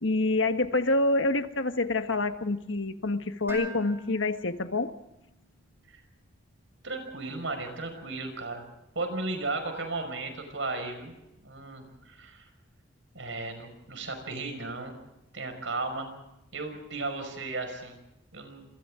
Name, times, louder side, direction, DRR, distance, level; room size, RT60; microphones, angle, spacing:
voice 1, 0.0-4.9, left 2 dB, 80° left, 8 dB, 1.5 m, -27 dB
Dishes pots and pans, 3.5-5.5, equal, 15° right, 5.1 m, -43 dB
voice 2, 6.8-8.6 8.9-11.1 11.4-12.4 13.1-15.0 15.3-16.1 16.5-18.0 18.3-18.6, right 3 dB, 80° right, 5 dB, 5.8 m, -35 dB
28.0 x 27.0 x 3.8 m, 0.90 s
head